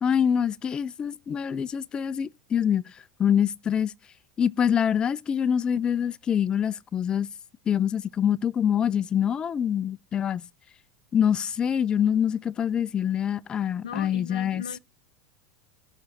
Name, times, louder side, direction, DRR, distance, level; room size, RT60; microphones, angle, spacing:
voice 1, 0.0-2.9 3.2-3.9 4.4-7.3 7.7-10.4 11.1-14.6, left 8 dB, 30° left, 0.5 m, -25 dB
voice 2, 13.8-14.8, left 8 dB, 85° left, 0.4 m, -37 dB
17.0 x 6.2 x 2.8 m
hypercardioid pair, 90°, 3 cm